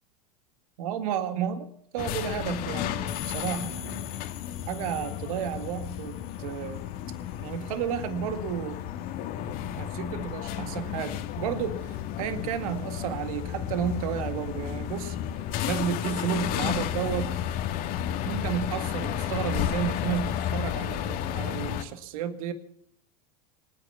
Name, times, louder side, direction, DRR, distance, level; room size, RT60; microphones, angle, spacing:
voice 1, 0.8-4.1 4.7-6.9 7.4-8.8 9.8-15.2 15.6-17.4 18.2-22.5, right 8 dB, 65° right, 10 dB, 2.0 m, -32 dB
sound 1, 2.0-21.8, left 10 dB, 50° left, 1.8 m, -32 dB
sound 2, 3.1-6.7, left 14 dB, 65° left, 3.1 m, -43 dB
26.0 x 9.7 x 5.7 m, 0.69 s
hypercardioid pair, 95°, 20 cm